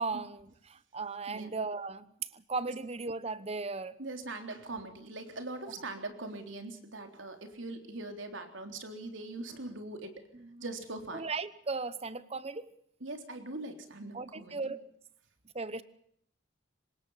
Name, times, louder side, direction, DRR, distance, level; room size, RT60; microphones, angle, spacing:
voice 1, 0.0-4.0 10.3-10.6 11.1-12.7 14.1-14.8 15.5-15.8, right 4 dB, 35° right, 16 dB, 1.0 m, -37 dB
voice 2, 4.0-10.2 10.6-11.3 13.0-14.7, right 2 dB, 85° right, 5 dB, 3.7 m, -41 dB
24.5 x 20.5 x 5.7 m, 0.69 s
head